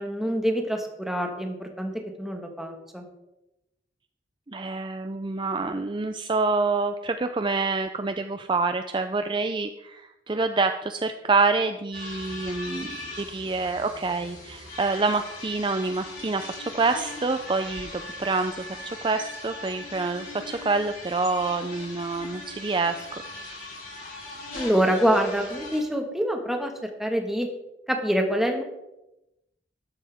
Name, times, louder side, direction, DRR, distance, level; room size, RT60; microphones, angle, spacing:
voice 1, 0.0-1.9 2.2-3.0 24.5-27.5 27.9-28.6, equal, ahead, 3 dB, 1.5 m, -26 dB
voice 2, 4.5-12.9 13.2-23.1, right 3 dB, 25° right, 8 dB, 0.5 m, -27 dB
sound 1, 11.9-25.8, left 2 dB, 55° left, 5.0 m, -40 dB
13.0 x 12.0 x 3.5 m, 0.93 s
head